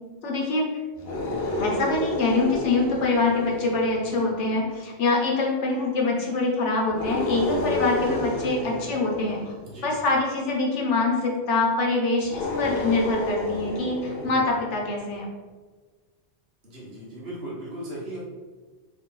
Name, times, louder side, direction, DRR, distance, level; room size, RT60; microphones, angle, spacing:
voice 1, 0.2-0.6 1.6-9.5 9.8-15.2, left 3 dB, 90° left, -1 dB, 1.2 m, -24 dB
sound 1, 1.0-4.5 6.9-10.0 12.2-15.0, left 1 dB, 60° left, 0.9 m, -30 dB
voice 2, 16.6-18.2, right 1 dB, 60° right, -7 dB, 1.5 m, -38 dB
3.3 x 2.8 x 3.8 m, 1.4 s
omnidirectional pair, 1.2 m